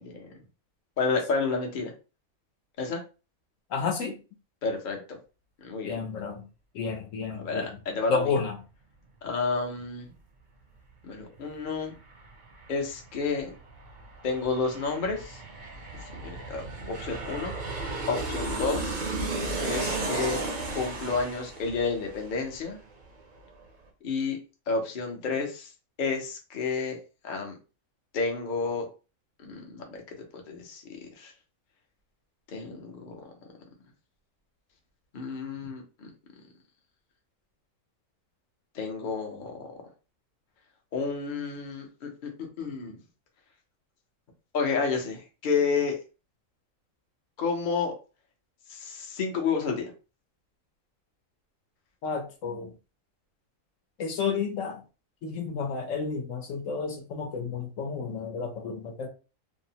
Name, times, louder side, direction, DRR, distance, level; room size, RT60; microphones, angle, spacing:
voice 1, 1.0-1.9 2.8-3.0 4.6-5.0 5.6-6.0 7.4-8.2 9.2-10.1 11.0-11.9 12.7-13.5 14.2-15.4 16.1-17.5 18.1-19.0 19.6-20.4 20.7-22.8 24.0-24.4 24.7-25.7 26.0-27.0 27.2-27.5 28.1-28.9 29.4-30.0 30.3-30.8 31.2-31.3 32.5-33.2 35.1-36.1 38.7-39.8 40.9-42.3 42.6-43.0 44.5-46.0 47.4-47.9 48.7-49.8, left 4 dB, 45° left, 2 dB, 0.7 m, -30 dB
voice 2, 3.7-4.2 5.8-6.5 6.7-7.7 8.1-8.6 52.0-52.7 54.0-54.8 55.2-59.1, left 5 dB, 70° left, 3 dB, 1.0 m, -31 dB
Aircraft, 11.4-11.5 11.7-23.1 23.4-23.5, right 2 dB, 50° right, 0.6 m, -34 dB
2.7 x 2.0 x 2.7 m, 0.33 s
omnidirectional pair, 1.4 m